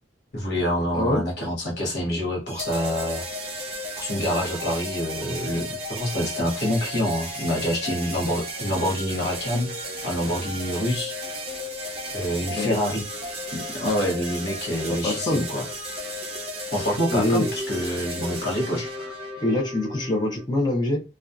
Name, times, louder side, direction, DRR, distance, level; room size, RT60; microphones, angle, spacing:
voice 1, 0.3-3.2 4.0-9.7 10.0-11.1 12.1-13.0 13.5-15.6 16.7-19.1, equal, 65° left, -2 dB, 0.9 m, -26 dB
sound 1, 2.5-20.4, equal, 35° right, 0.8 m, -34 dB
voice 2, 12.4-12.9 14.9-15.4 17.1-17.5 19.4-21.0, left 1 dB, 25° left, 0 dB, 0.6 m, -24 dB
2.6 x 2.3 x 2.2 m, 0.29 s
head